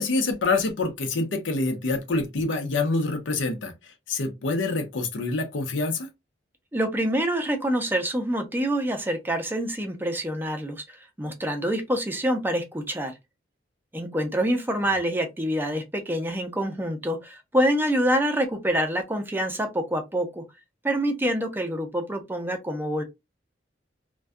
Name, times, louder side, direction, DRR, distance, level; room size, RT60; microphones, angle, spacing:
voice 1, 0.0-3.7 4.1-6.1, left 3 dB, 80° left, 0.6 m, -26 dB
voice 2, 6.7-13.1 13.9-20.4 20.8-23.0, equal, 10° right, 0.4 m, -26 dB
2.6 x 2.2 x 2.3 m
head